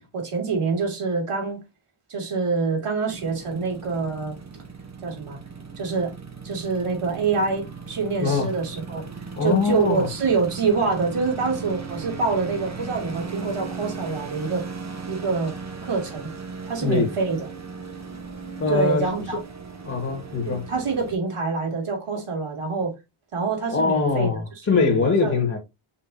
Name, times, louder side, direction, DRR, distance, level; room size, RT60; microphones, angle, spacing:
voice 1, 0.1-1.6 2.1-4.3 5.0-5.4 5.8-6.1 6.4-9.1 9.4-14.6 15.0-15.5 15.8-16.3 16.6-17.5 18.7-19.4 20.4-22.9 23.3-24.3 24.7-25.3, right 4 dB, 90° right, 3.1 m, -26 dB
sound 1, 3.1-21.1, right 5 dB, 35° right, 1.2 m, -37 dB
voice 2, 8.2-8.5 9.3-10.1 16.8-17.1 18.6-19.1 19.9-20.6 23.7-25.6, left 4 dB, 30° left, 1.9 m, -22 dB
6.3 x 5.7 x 2.9 m
wide cardioid pair, 155°, 50 cm